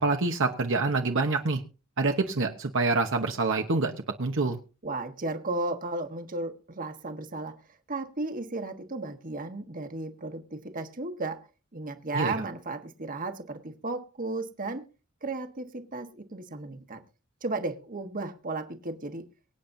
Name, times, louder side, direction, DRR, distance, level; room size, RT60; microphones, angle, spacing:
voice 1, 0.0-1.6 2.0-3.9 4.2-4.6 12.1-12.3, right 3 dB, 60° right, 1.0 m, -26 dB
voice 2, 4.8-7.5 7.9-11.4 11.7-14.8 15.2-17.0 17.4-19.3, right 2 dB, 40° right, 1.3 m, -34 dB
23.5 x 8.7 x 2.7 m
head